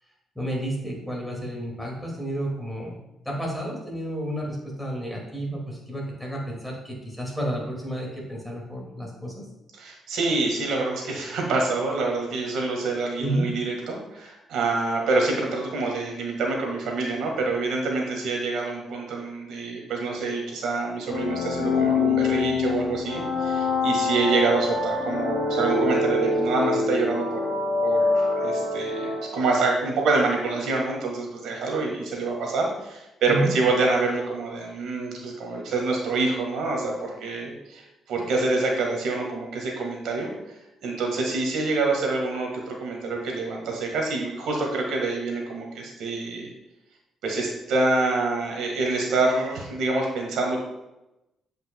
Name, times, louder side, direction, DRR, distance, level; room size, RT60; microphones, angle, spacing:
voice 1, 0.4-3.0 3.3-9.5 13.2-13.5 33.3-33.5, right 1 dB, ahead, -2 dB, 2.3 m, -31 dB
voice 2, 9.7-27.5 27.8-40.3 40.8-46.5 47.2-50.6, right 3 dB, 80° right, 1 dB, 1.7 m, -26 dB
sound 1, 21.1-29.7, left 3 dB, 80° left, 2.0 m, -25 dB
8.1 x 5.2 x 2.3 m, 0.94 s
cardioid pair, 90°, 0 cm